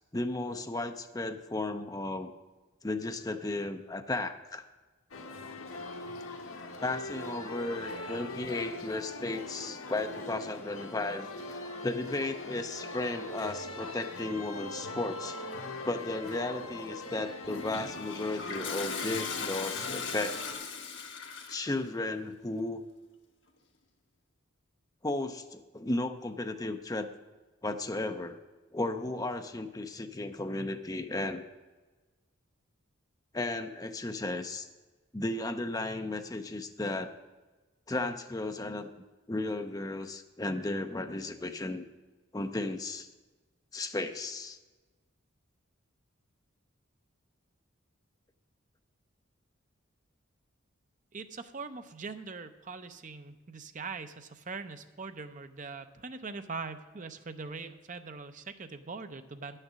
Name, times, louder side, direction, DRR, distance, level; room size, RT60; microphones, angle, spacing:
voice 1, 0.1-2.3 2.8-4.6 6.8-11.3 11.8-15.4 15.8-20.4 21.5-22.8 25.0-27.1 27.6-28.4 28.7-31.4 33.3-34.7 35.1-37.1 37.9-38.9 39.3-41.8 42.3-43.1 43.7-44.6, left 2 dB, 15° left, 7 dB, 0.6 m, -34 dB
sound 1, 5.1-20.6, left 2 dB, 80° left, 1.2 m, -41 dB
Toilet flush, 17.4-21.7, left 5 dB, 60° left, 1.3 m, -38 dB
voice 2, 51.1-59.6, right 4 dB, 40° right, 9 dB, 0.6 m, -42 dB
9.8 x 6.6 x 7.4 m, 1.2 s
head